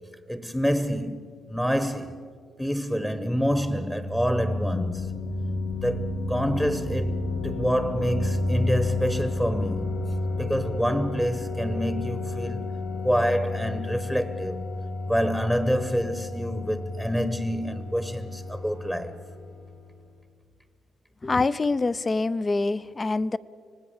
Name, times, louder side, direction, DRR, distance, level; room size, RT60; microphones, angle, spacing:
voice 1, 0.3-2.2 2.6-5.1 5.8-10.0 10.4-12.7 13.0-14.7 15.1-19.2, equal, ahead, 1.1 m, -27 dB
sound 1, 3.1-19.8, left 2 dB, 80° left, 2.2 m, -31 dB
voice 2, 21.2-23.4, left 3 dB, 25° left, 0.6 m, -25 dB
26.0 x 18.5 x 7.4 m
cardioid pair, 90°, 0 cm